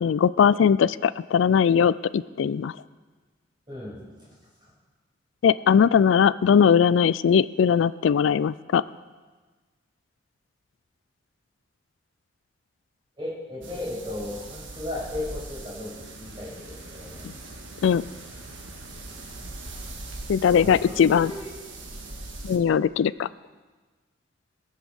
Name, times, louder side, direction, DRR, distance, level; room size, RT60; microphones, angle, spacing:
voice 1, 0.0-2.7 5.4-8.8 17.8-18.0 20.3-21.3 22.4-23.3, left 7 dB, 80° left, 18 dB, 0.3 m, -20 dB
voice 2, 3.7-4.4 13.2-17.3 20.5-21.5, left 1 dB, 25° right, -6 dB, 6.2 m, -36 dB
sound 1, 13.6-22.6, right 2 dB, 75° right, 1.8 m, -41 dB
21.5 x 7.3 x 6.3 m, 1.3 s
head